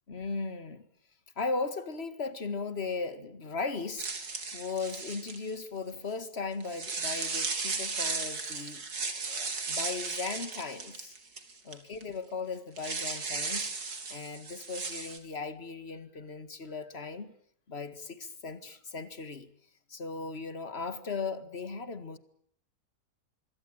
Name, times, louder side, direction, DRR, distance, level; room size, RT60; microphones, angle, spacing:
voice 1, 0.1-0.9 1.4-4.1 4.5-8.8 9.3-11.2 11.6-13.7 14.1-17.3 17.7-19.5 19.9-22.2, left 4 dB, 40° left, 12 dB, 2.1 m, -37 dB
sound 1, 4.0-5.6 6.6-11.7 12.0-12.1 12.8-15.2, right 4 dB, 85° right, 3.4 m, -35 dB
25.5 x 23.0 x 8.9 m, 0.64 s
omnidirectional pair, 1.6 m